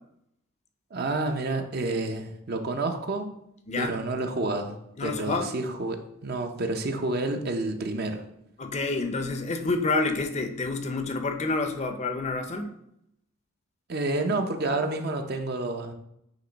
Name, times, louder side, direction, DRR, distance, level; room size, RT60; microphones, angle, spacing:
voice 1, 0.9-3.3 3.8-4.8 5.0-8.2 13.9-15.9, right 2 dB, 50° right, 5 dB, 0.6 m, -29 dB
voice 2, 3.7-4.0 5.0-5.5 8.6-12.7, left 3 dB, 30° left, 6 dB, 0.5 m, -28 dB
9.0 x 3.0 x 4.0 m, 0.78 s
head